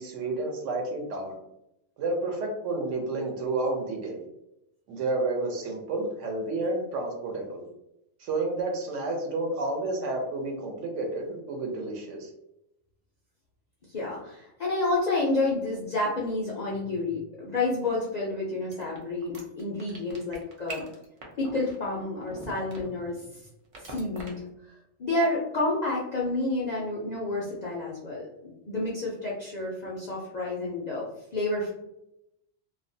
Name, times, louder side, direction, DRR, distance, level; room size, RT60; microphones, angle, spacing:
voice 1, 0.0-1.4 2.0-4.2 4.9-7.7 8.2-12.3, right 2 dB, 80° right, 2 dB, 1.0 m, -30 dB
voice 2, 13.9-20.8 21.4-23.4 23.8-24.7 25.0-31.1 31.3-31.7, left 2 dB, 65° left, -5 dB, 0.4 m, -30 dB
sound 1, 18.7-23.2 23.7-24.3, right 2 dB, 50° right, 0.4 m, -42 dB
2.4 x 2.1 x 2.6 m, 0.84 s
omnidirectional pair, 1.3 m